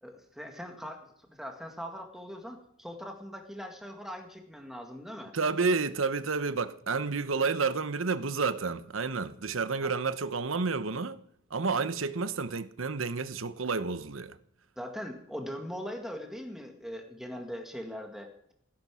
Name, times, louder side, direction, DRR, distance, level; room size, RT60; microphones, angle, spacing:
voice 1, 0.0-1.0 1.3-5.3 9.8-9.9 14.8-18.5, equal, ahead, 1.9 m, -41 dB
voice 2, 5.3-11.2 11.5-14.4, right 4 dB, 90° right, 0.9 m, -30 dB
16.5 x 11.0 x 6.2 m
head